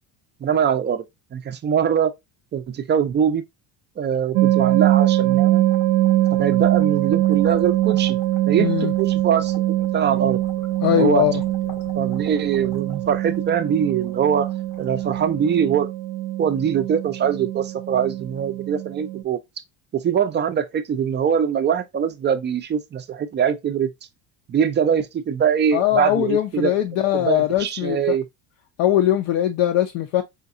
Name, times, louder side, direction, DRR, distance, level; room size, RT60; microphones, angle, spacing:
voice 1, 0.4-1.0 1.3-2.1 2.5-3.4 4.0-5.6 6.3-8.2 8.5-10.4 10.9-11.2 12.0-14.5 14.8-15.9 16.4-19.4 19.9-23.9 24.5-26.7 27.1-28.2, right 8 dB, 25° right, 0.4 m, -22 dB
sound 1, 4.3-19.2, right 15 dB, 80° right, 0.5 m, -22 dB
sound 2, 4.9-16.1, left 4 dB, 90° left, 1.8 m, -46 dB
voice 2, 8.6-8.9 10.8-11.4 25.7-28.2 28.8-30.2, left 12 dB, 65° left, 0.7 m, -21 dB
5.0 x 2.3 x 2.6 m
cardioid pair, 120°, 47 cm